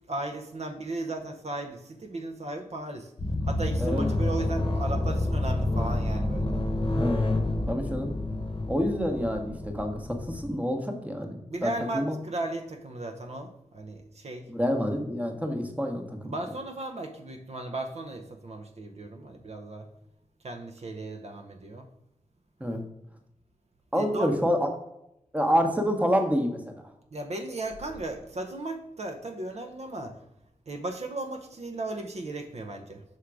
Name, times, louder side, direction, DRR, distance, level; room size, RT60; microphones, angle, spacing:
voice 1, 0.1-3.1 3.5-6.6 11.5-14.5 15.8-15.9 16.2-19.9 20.4-21.9 23.9-24.3 27.1-30.2 30.7-33.0, right 2 dB, 55° right, 4 dB, 0.7 m, -36 dB
sound 1, 3.2-10.5, left 1 dB, 35° left, 0.9 m, -28 dB
voice 2, 6.9-7.4 7.7-8.1 8.7-12.2 14.5-16.3 22.6-22.9 23.9-24.7 25.3-26.8, equal, 10° right, 4 dB, 1.0 m, -28 dB
6.0 x 3.6 x 4.7 m, 0.83 s
wide cardioid pair, 95°, 13 cm